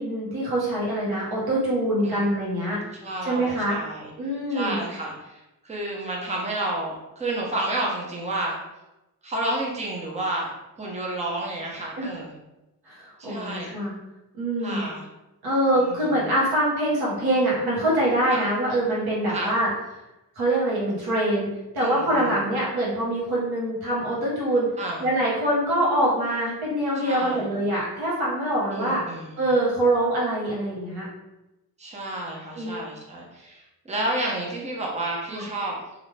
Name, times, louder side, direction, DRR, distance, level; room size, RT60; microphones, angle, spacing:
voice 1, 0.0-2.8 3.2-3.8 4.2-4.8 12.0-12.1 12.8-13.9 14.3-14.8 15.4-19.7 20.4-21.5 21.7-24.7 25.0-29.0 29.4-31.1 32.5-32.8 35.3-35.4, right 1 dB, 85° right, -5 dB, 1.1 m, -24 dB
voice 2, 3.0-4.1 4.5-8.6 9.2-10.5 10.8-12.3 13.2-13.7 14.6-15.1 15.8-16.2 18.3-18.5 19.3-19.6 21.8-22.4 24.8-25.1 26.9-27.5 28.7-29.4 31.8-35.8, right 1 dB, 20° right, -3 dB, 0.7 m, -31 dB
2.4 x 2.0 x 3.1 m, 0.97 s
cardioid pair, 80°, 36 cm